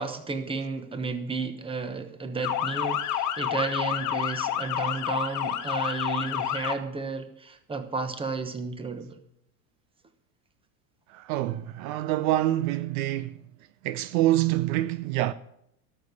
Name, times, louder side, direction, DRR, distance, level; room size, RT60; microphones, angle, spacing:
voice 1, 0.0-9.2, right 4 dB, 10° right, 1.0 m, -32 dB
Motor vehicle (road) / Siren, 2.4-6.8, left 10 dB, 40° left, 1.2 m, -29 dB
voice 2, 11.1-13.4 13.8-15.3, right 14 dB, 60° right, 0.6 m, -26 dB
12.5 x 6.9 x 8.2 m
supercardioid pair, 130°, 46 cm